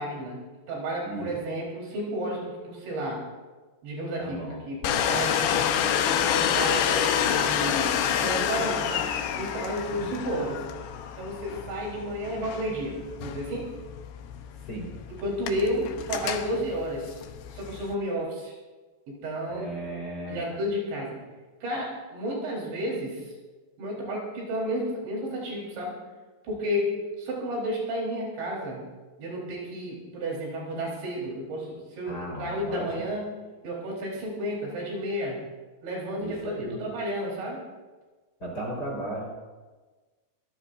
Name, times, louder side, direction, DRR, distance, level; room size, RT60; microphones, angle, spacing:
voice 1, 0.0-3.3 3.8-4.4 4.7-10.7 11.2-13.7 15.2-17.2 17.5-18.5 19.1-19.7 20.3-21.2 21.6-23.3 23.8-26.0 26.4-28.8 29.2-33.2 33.6-35.4 35.8-37.6, equal, 80° right, -4 dB, 6.5 m, -32 dB
voice 2, 4.2-4.6 9.9-10.3 14.7-14.9 19.5-20.6 32.0-33.1 36.2-36.8 38.4-39.4, right 1 dB, 20° left, -3 dB, 4.7 m, -36 dB
Domestic sounds home sounds, 4.8-17.9, left 9 dB, 90° left, 3.3 m, -28 dB
25.0 x 17.5 x 2.7 m, 1.3 s
omnidirectional pair, 5.0 m